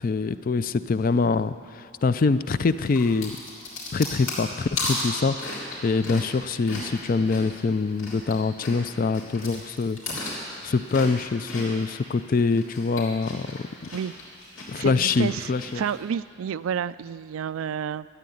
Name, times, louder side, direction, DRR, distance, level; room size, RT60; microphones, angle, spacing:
voice 1, 0.0-3.4 3.9-10.0 10.6-13.6 14.7-15.8, left 4 dB, 40° left, 13 dB, 0.4 m, -24 dB
sound 1, 2.8-8.3 8.6-11.9 12.4-15.9, left 2 dB, 90° left, 4.1 m, -35 dB
voice 2, 14.8-18.1, right 8 dB, 85° right, 17 dB, 0.3 m, -30 dB
13.5 x 9.5 x 9.2 m, 2.2 s
head